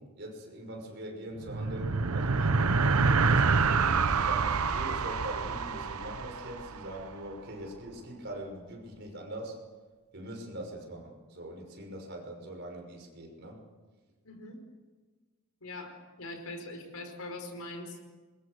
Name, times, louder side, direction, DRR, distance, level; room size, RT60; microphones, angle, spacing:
voice 1, 0.0-2.7 3.0-9.6 10.1-13.6, right 1 dB, 50° right, 2 dB, 5.9 m, -42 dB
sound 1, 1.4-7.1, right 4 dB, 80° right, 0.9 m, -27 dB
voice 2, 14.2-14.6 15.6-18.0, left 2 dB, 80° left, 5 dB, 5.1 m, -42 dB
26.5 x 22.5 x 6.7 m, 1.3 s
head